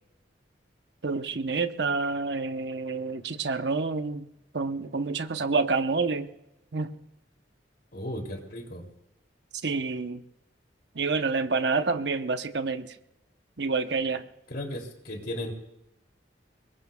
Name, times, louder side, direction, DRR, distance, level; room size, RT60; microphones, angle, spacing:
voice 1, 1.0-4.3 4.5-6.3 6.7-6.9 9.6-10.2 10.9-13.0 13.6-14.2, right 4 dB, 65° right, 8 dB, 0.9 m, -28 dB
voice 2, 7.9-8.9 14.5-15.5, left 1 dB, 55° left, 3 dB, 3.0 m, -35 dB
25.0 x 22.0 x 2.3 m, 0.89 s
head